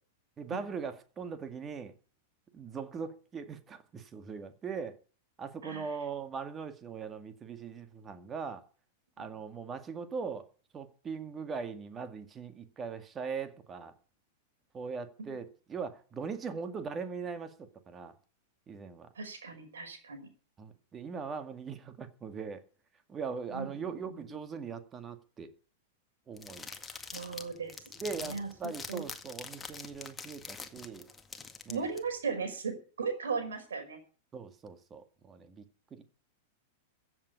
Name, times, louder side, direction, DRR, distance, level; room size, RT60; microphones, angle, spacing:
voice 1, 0.4-1.9 2.5-5.0 5.4-8.6 9.2-10.5 10.7-13.9 14.7-18.1 18.7-19.1 20.6-22.6 23.1-25.5 26.3-26.7 28.0-31.1 31.7-31.9 34.3-35.6 35.9-36.0, right 5 dB, 25° right, 2.0 m, -40 dB
voice 2, 5.6-6.0 15.3-15.4 19.2-20.3 23.5-24.4 27.1-27.7 28.1-29.0 31.7-34.0, right 5 dB, 70° right, 5.3 m, -37 dB
sound 1, 26.4-32.0, left 4 dB, 15° left, 1.9 m, -45 dB
15.5 x 7.8 x 8.3 m
figure-of-eight pair, 95°, 0 cm